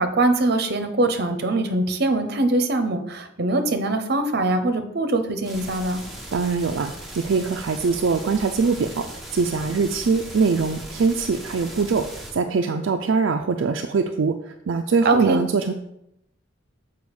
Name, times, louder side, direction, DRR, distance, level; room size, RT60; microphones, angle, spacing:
voice 1, 0.0-6.0 15.0-15.4, right 2 dB, 55° right, 7 dB, 0.8 m, -22 dB
sound 1, 5.4-12.3, right 1 dB, ahead, 1.1 m, -38 dB
voice 2, 6.3-9.1 9.3-15.7, right 4 dB, 70° right, 4 dB, 0.4 m, -23 dB
7.0 x 4.6 x 4.8 m, 0.80 s
head